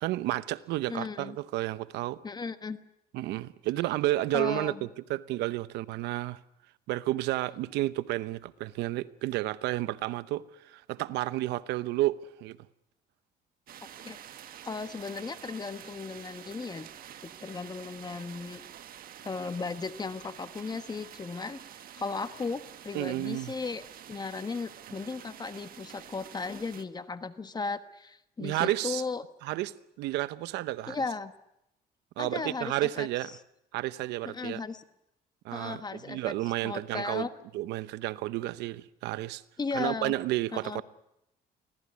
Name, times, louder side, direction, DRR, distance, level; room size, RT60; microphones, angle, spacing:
voice 1, 0.0-2.2 3.1-6.4 6.9-12.6 22.9-23.5 28.4-29.0 29.4-31.0 32.2-33.3 33.7-34.6 35.4-37.3 37.5-39.4 39.7-40.8, right 16 dB, 85° right, 0.9 m, -31 dB
voice 2, 0.9-1.4 2.2-2.8 4.3-4.9 14.0-14.2 14.6-16.9 17.2-18.6 19.2-21.6 21.9-29.2 30.9-31.3 32.2-33.1 34.2-34.8 35.5-36.3 36.6-37.3 39.6-40.1 40.5-40.8, left 4 dB, 25° left, 1.3 m, -36 dB
sound 1, 13.7-26.8, right 10 dB, 60° right, 1.6 m, -48 dB
24.5 x 17.0 x 9.6 m
cardioid pair, 110°, 17 cm